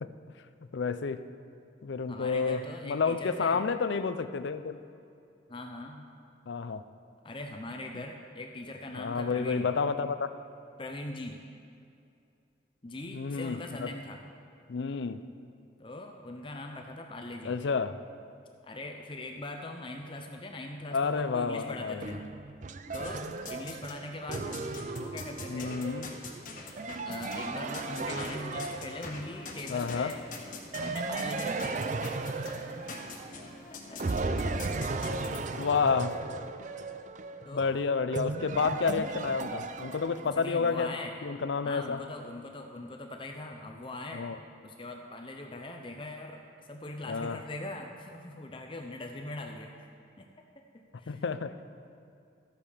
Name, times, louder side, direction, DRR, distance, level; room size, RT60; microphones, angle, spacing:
voice 1, 0.7-1.2 1.8-4.8 6.5-6.9 8.9-10.3 13.1-13.9 14.7-15.2 17.4-18.0 20.9-22.2 25.5-26.1 29.7-30.1 35.6-36.2 37.5-40.9 41.2-42.0 44.1-44.4 47.1-47.4 51.1-51.5, left 5 dB, 75° left, 12 dB, 0.5 m, -30 dB
voice 2, 2.1-3.6 5.5-6.1 7.2-9.7 10.8-11.4 12.8-14.2 15.8-17.5 18.6-22.2 22.9-24.6 25.0-25.8 27.1-30.2 30.8-31.8 33.7-34.6 37.4-37.8 40.2-41.1 41.6-44.3 44.6-49.9 50.2-50.3 50.7-51.2, left 2 dB, 25° left, 3 dB, 0.6 m, -41 dB
sound 1, 22.0-29.4 30.7-33.6 34.0-40.5, right 3 dB, 40° right, 0.4 m, -36 dB
sound 2, 22.9-24.0 24.3-35.4, left 3 dB, 45° left, 1.3 m, -44 dB
13.0 x 8.3 x 5.1 m, 2.5 s
head